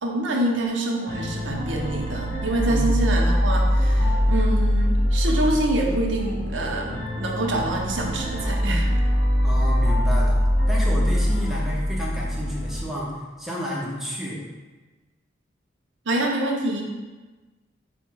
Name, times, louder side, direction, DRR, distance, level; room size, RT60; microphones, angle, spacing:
voice 1, 0.0-8.9 16.1-16.8, right 1 dB, 80° right, 0 dB, 0.6 m, -26 dB
sound 1, 1.1-12.8, equal, 60° left, 0.9 m, -23 dB
voice 2, 2.6-3.1 9.4-10.4 10.7-14.4, equal, ahead, -5 dB, 0.6 m, -31 dB
4.8 x 2.1 x 4.5 m, 1.3 s
head